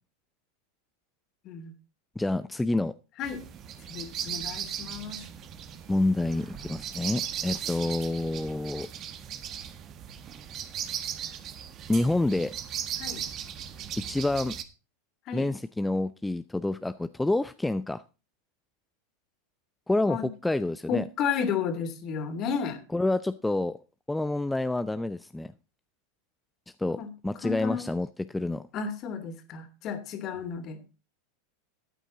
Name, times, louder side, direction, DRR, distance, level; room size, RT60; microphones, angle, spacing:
voice 1, 2.2-2.9 5.9-8.9 11.9-12.5 14.0-14.6 15.3-18.0 19.9-21.0 22.9-23.8 24.1-25.5 26.8-28.6, left 2 dB, 5° left, 0.5 m, -28 dB
sound 1, 3.2-14.6, right 9 dB, 40° right, 1.5 m, -37 dB
voice 2, 3.9-5.2 13.0-13.2 15.3-15.5 20.1-20.3 20.9-22.8 27.0-27.1 27.4-27.9 28.7-30.8, left 6 dB, 45° left, 2.8 m, -32 dB
13.0 x 9.1 x 3.9 m
hypercardioid pair, 95°, 0 cm